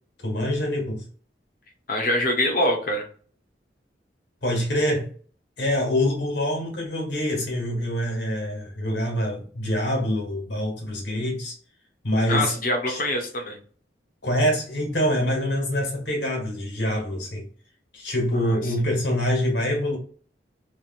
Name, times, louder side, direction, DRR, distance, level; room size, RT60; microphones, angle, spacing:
voice 1, 0.2-1.1 4.4-5.1 5.6-11.5 12.0-12.5 12.9-13.0 14.2-17.5 17.9-20.0, equal, 85° left, 1.4 m, -25 dB
voice 2, 1.9-3.0 12.3-13.6 18.3-18.6, left 1 dB, 50° left, 0.8 m, -24 dB
3.1 x 2.4 x 2.4 m
head